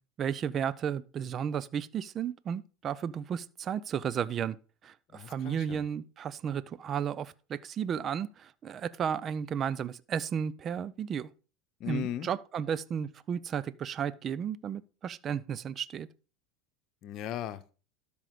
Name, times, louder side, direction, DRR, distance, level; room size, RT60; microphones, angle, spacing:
voice 1, 0.2-4.6 4.8-11.3 11.9-16.1, right 8 dB, 35° right, 0.6 m, -33 dB
voice 2, 5.1-5.8 11.8-12.3 17.0-17.7, left 11 dB, 50° left, 1.0 m, -37 dB
12.5 x 5.4 x 4.8 m
hypercardioid pair, 90°, 0 cm